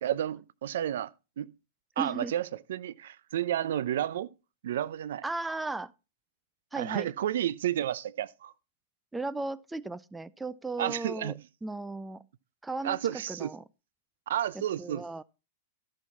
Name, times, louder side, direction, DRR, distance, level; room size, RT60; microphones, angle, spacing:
voice 1, 0.0-1.1 1.4-1.5 2.0-4.3 4.6-5.2 6.7-8.5 10.8-11.4 12.8-13.5 14.3-15.0, right 11 dB, 80° right, 0.6 m, -31 dB
voice 2, 2.0-2.3 5.2-5.9 6.7-7.1 9.1-11.3 11.6-12.2 12.6-13.6 14.8-15.2, right 3 dB, 10° right, 0.4 m, -36 dB
13.5 x 6.2 x 4.1 m
supercardioid pair, 135°, 0 cm